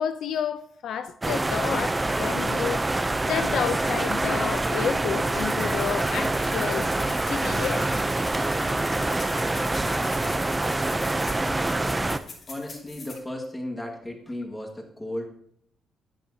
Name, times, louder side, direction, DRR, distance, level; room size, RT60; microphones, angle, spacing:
voice 1, 0.0-2.9 3.3-6.9 7.3-7.8, left 8 dB, 70° left, 0.5 m, -30 dB
sound 1, 1.2-12.2, right 2 dB, 15° right, 0.4 m, -26 dB
sound 2, 5.3-13.1, left 3 dB, 40° left, 2.3 m, -43 dB
voice 2, 12.5-15.3, left 1 dB, 10° left, 1.6 m, -35 dB
10.5 x 10.5 x 2.7 m
cardioid pair, 155°, 0 cm